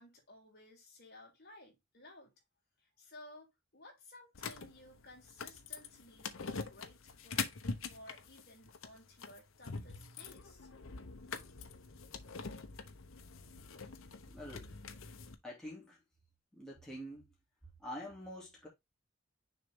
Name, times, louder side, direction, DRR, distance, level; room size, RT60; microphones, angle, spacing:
voice 1, 0.0-2.3 2.8-10.7, left 1 dB, 50° left, 3.1 m, -57 dB
sound 1, 4.3-15.3, left 5 dB, 85° left, 0.9 m, -44 dB
voice 2, 14.3-14.7 15.4-16.0 16.5-17.3 17.8-18.7, equal, 5° left, 2.5 m, -46 dB
6.5 x 4.0 x 3.6 m
head